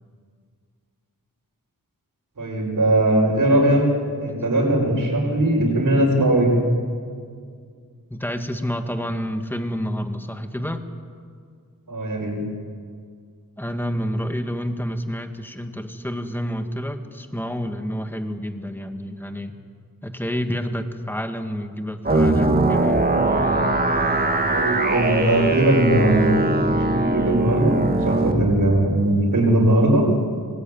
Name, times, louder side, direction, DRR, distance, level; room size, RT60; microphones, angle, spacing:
voice 1, 2.4-3.8 4.2-6.5 11.9-12.4 24.5-30.0, right 1 dB, 60° right, -6 dB, 5.4 m, -19 dB
voice 2, 8.1-10.8 13.6-19.6 20.0-23.1, equal, 5° left, 6 dB, 1.9 m, -29 dB
sound 1, 22.0-28.3, right 2 dB, 25° right, 1.8 m, -21 dB
25.0 x 20.0 x 9.4 m, 2.1 s
wide cardioid pair, 100°, 35 cm